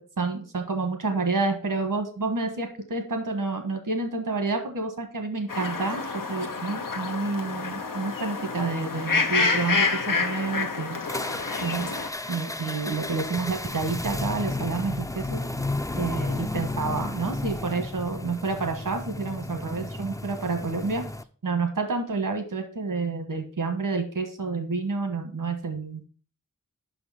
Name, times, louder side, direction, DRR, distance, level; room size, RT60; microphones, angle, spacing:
voice 1, 0.0-11.0 11.6-11.9 12.3-15.4 15.9-21.1 21.4-26.0, right 4 dB, 80° right, 5 dB, 1.4 m, -29 dB
sound 1, 5.5-12.1, left 4 dB, 80° left, 0.9 m, -28 dB
sound 2, 11.0-21.2, left 2 dB, 10° left, 0.4 m, -33 dB
5.8 x 5.0 x 5.6 m, 0.41 s
wide cardioid pair, 55°, 32 cm